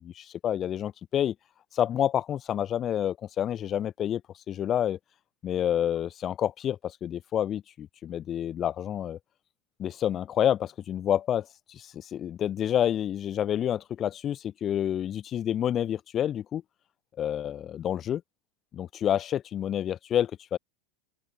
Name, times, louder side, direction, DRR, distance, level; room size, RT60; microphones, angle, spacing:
voice 1, 0.0-1.3 1.7-4.2 4.5-5.0 5.4-9.2 9.8-16.6 17.2-18.2 18.7-20.6, left 10 dB, 35° left, 0.5 m, -28 dB
open air
hypercardioid pair, 85°, 0 cm